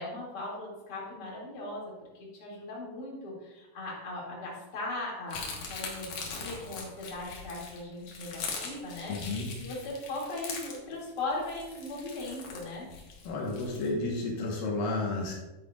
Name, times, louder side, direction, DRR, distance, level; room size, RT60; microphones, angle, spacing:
voice 1, 0.0-1.9 2.2-12.9, left 2 dB, 30° left, -4 dB, 2.6 m, -38 dB
sound 1, 5.3-13.9, left 4 dB, 55° left, 2.1 m, -41 dB
voice 2, 9.1-9.5 13.3-15.3, left 2 dB, 80° left, -2 dB, 2.9 m, -31 dB
10.5 x 9.2 x 2.4 m, 1.0 s
omnidirectional pair, 4.1 m